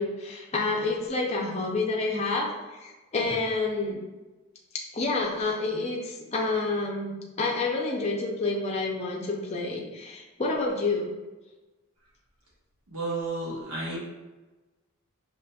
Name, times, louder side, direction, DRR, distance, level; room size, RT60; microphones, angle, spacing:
voice 1, 0.0-4.0 4.7-7.1 7.4-11.1, left 3 dB, 30° left, -2 dB, 0.5 m, -29 dB
voice 2, 12.9-14.0, right 2 dB, 80° right, -6 dB, 1.2 m, -32 dB
4.9 x 2.9 x 2.3 m, 1.2 s
head